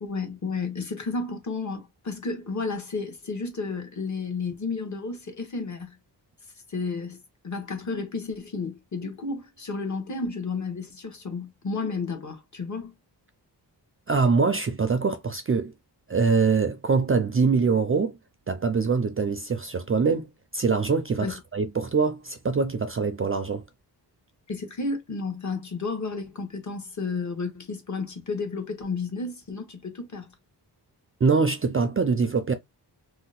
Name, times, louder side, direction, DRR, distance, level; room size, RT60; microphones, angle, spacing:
voice 1, 0.0-6.0 6.7-12.9 21.2-21.4 24.5-30.3, left 4 dB, 40° left, 1.1 m, -32 dB
voice 2, 14.1-15.7 16.1-18.2 18.5-23.6 31.2-32.5, right 4 dB, 35° right, 0.4 m, -24 dB
2.7 x 2.1 x 3.9 m
wide cardioid pair, 130°, 42 cm